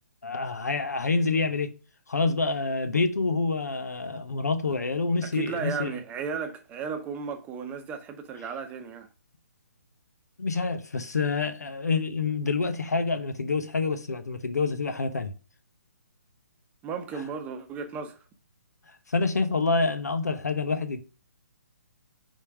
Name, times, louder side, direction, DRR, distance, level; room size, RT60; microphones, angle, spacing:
voice 1, 0.2-1.7 2.1-5.9 10.4-15.3 17.2-17.3 19.1-21.0, left 4 dB, 85° left, 1.0 m, -27 dB
voice 2, 5.3-9.1 16.8-18.2, right 6 dB, 15° right, 0.8 m, -34 dB
5.3 x 3.7 x 4.8 m
hypercardioid pair, 140°, 9 cm